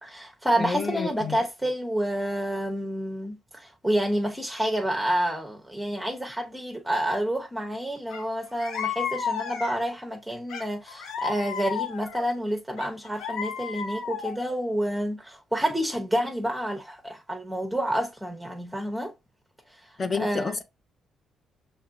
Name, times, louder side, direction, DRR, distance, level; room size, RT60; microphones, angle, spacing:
voice 1, 0.0-19.1 19.8-19.9 20.2-20.5, equal, 5° right, 0.8 m, -29 dB
voice 2, 0.6-1.4 20.0-20.6, left 4 dB, 35° left, 0.6 m, -30 dB
sound 1, 8.1-8.2 8.6-9.9 10.5-12.3 12.8-14.5, left 7 dB, 80° left, 0.7 m, -33 dB
5.7 x 3.1 x 2.5 m
cardioid pair, 90°, 0 cm